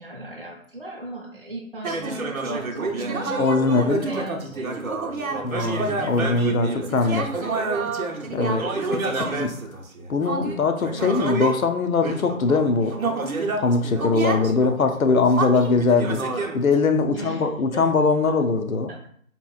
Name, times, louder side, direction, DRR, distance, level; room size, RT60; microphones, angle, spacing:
voice 1, 0.0-5.6 17.1-17.9 18.9-19.0, right 2 dB, 40° right, -2 dB, 0.5 m, -38 dB
sound 1, 1.8-11.6 12.0-16.7, right 3 dB, 75° right, 0.8 m, -28 dB
voice 2, 3.4-4.0 5.4-7.3 8.3-9.6 10.1-13.0 13.6-16.2 16.5-18.9, left 4 dB, 75° left, 7 dB, 0.7 m, -21 dB
5.3 x 2.9 x 2.3 m, 0.62 s
figure-of-eight pair, 170°, 42 cm